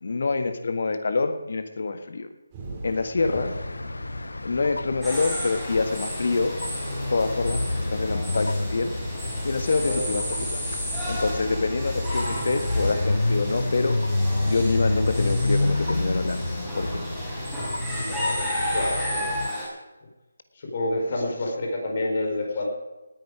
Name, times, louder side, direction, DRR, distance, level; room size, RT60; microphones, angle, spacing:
voice 1, 0.0-2.3 2.8-3.5 4.4-6.6 7.1-7.6 7.9-8.9 9.4-10.6 11.1-14.0 14.4-16.5 16.8-17.0 21.1-21.2, left 3 dB, 60° left, 9 dB, 1.6 m, -26 dB
sound 1, 2.5-18.2, right 2 dB, 20° right, 4.3 m, -40 dB
sound 2, 3.2-19.5, left 2 dB, 80° left, 0.6 m, -29 dB
sound 3, 5.0-19.7, equal, ahead, 5.3 m, -33 dB
voice 2, 17.9-19.3 20.6-22.7, left 1 dB, 40° left, 0 dB, 4.4 m, -29 dB
19.0 x 10.0 x 4.9 m, 1.1 s
figure-of-eight pair, 155°, 0 cm